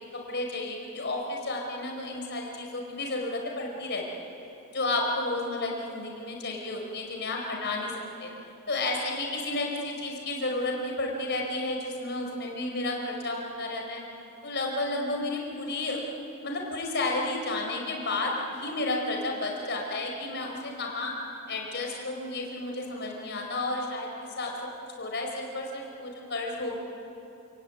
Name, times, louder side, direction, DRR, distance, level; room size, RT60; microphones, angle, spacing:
voice 1, 0.3-4.3 4.7-7.9 8.2-8.3 8.7-14.0 14.4-16.0 16.4-21.1 21.5-24.5 25.0-26.8, left 2 dB, 55° left, 1 dB, 4.9 m, -32 dB
28.5 x 19.0 x 9.5 m, 2.9 s
head